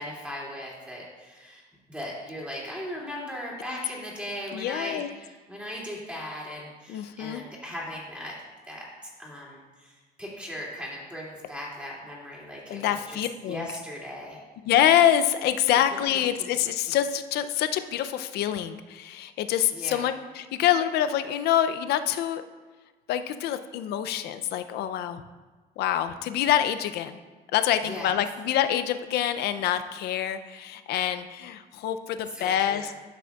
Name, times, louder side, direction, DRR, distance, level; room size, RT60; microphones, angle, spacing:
voice 1, 0.0-8.3 8.7-14.4 16.4-16.5 19.7-20.1 27.8-28.1 32.3-32.9, equal, 5° right, -4 dB, 2.5 m, -38 dB
voice 2, 4.5-5.1 6.9-7.4 12.7-13.7 14.7-22.4 23.1-25.2 25.8-27.2 27.5-32.9, left 10 dB, 75° left, 10 dB, 0.5 m, -26 dB
12.0 x 6.0 x 2.3 m, 1.3 s
cardioid pair, 110°, 17 cm